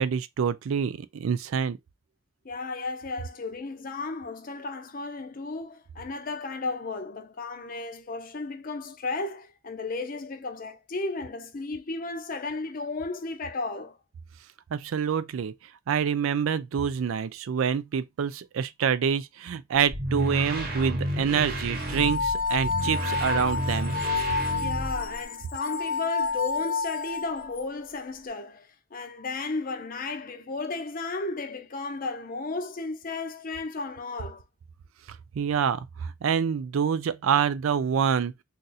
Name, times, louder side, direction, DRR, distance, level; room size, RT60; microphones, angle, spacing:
voice 1, 0.0-1.8 14.7-15.5 15.9-23.9 35.4-38.4, right 7 dB, 85° right, 0.4 m, -26 dB
voice 2, 2.4-14.0 24.6-34.4, left 3 dB, 45° left, 0.5 m, -34 dB
sound 1, 19.9-25.2, right 1 dB, 45° right, 1.0 m, -31 dB
sound 2, 21.8-27.6, left 4 dB, 90° left, 0.7 m, -30 dB
2.5 x 2.5 x 4.0 m
head